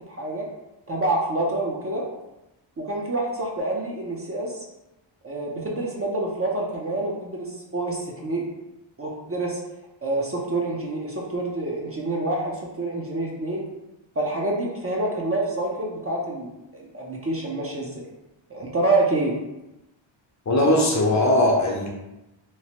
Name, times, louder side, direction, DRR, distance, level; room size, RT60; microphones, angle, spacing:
voice 1, 0.1-0.5 0.9-2.0 2.8-4.5 5.2-8.4 9.0-9.6 10.0-13.7 14.2-18.0 18.5-19.4, right 2 dB, 30° right, -2 dB, 0.5 m, -27 dB
voice 2, 20.5-21.9, left 1 dB, 35° left, -1 dB, 0.5 m, -19 dB
3.0 x 2.1 x 2.8 m, 0.96 s
wide cardioid pair, 100°, 48 cm